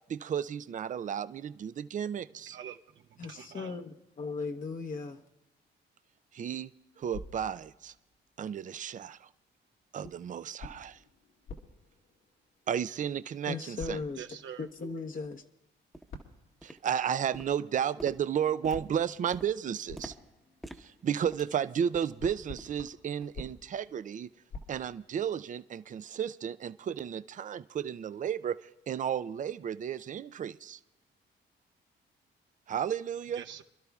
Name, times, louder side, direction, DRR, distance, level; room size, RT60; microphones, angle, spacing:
voice 1, 0.1-2.6 6.3-6.7 7.0-7.9 8.4-9.3 9.9-11.0 12.7-14.0 16.6-20.1 20.8-24.3 24.7-30.8 32.7-33.4, right 8 dB, 40° right, 0.5 m, -33 dB
voice 2, 2.5-3.8 14.1-14.7 33.3-33.6, right 9 dB, 70° right, 1.0 m, -45 dB
voice 3, 3.2-5.2 13.5-14.2 14.6-15.4, left 4 dB, 40° left, 1.0 m, -37 dB
sound 1, 7.1-8.3 10.0-12.9 13.8-14.6 16.1-17.2 18.7-21.6 21.9-25.5, left 3 dB, 85° left, 2.3 m, -49 dB
sound 2, 14.0-14.1 14.6-14.7 15.2-15.4 15.9-16.2 16.6-17.1 17.3-22.3 22.6-22.9 23.2-23.4 23.9-24.0, right 1 dB, ahead, 1.0 m, -49 dB
28.0 x 12.5 x 2.4 m
cardioid pair, 90°, 20 cm